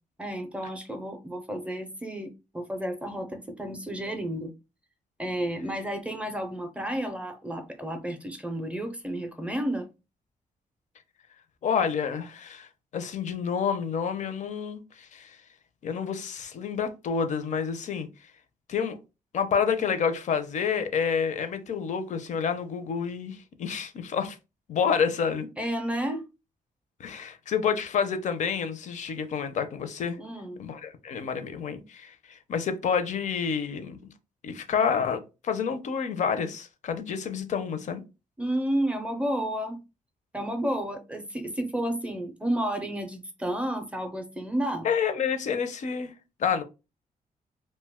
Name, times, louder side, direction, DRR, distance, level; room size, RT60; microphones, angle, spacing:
voice 1, 0.2-4.5 5.2-9.9 25.6-26.3 30.2-30.6 38.4-39.8 40.3-44.9, right 1 dB, 10° right, 0.4 m, -31 dB
voice 2, 11.6-12.7 12.9-15.4 15.8-18.1 18.7-19.0 19.3-24.4 24.7-25.5 27.0-30.2 30.6-34.1 34.4-38.0 44.8-46.1 46.4-46.6, left 6 dB, 60° left, 0.5 m, -29 dB
2.7 x 2.2 x 3.4 m
wide cardioid pair, 140°, 14 cm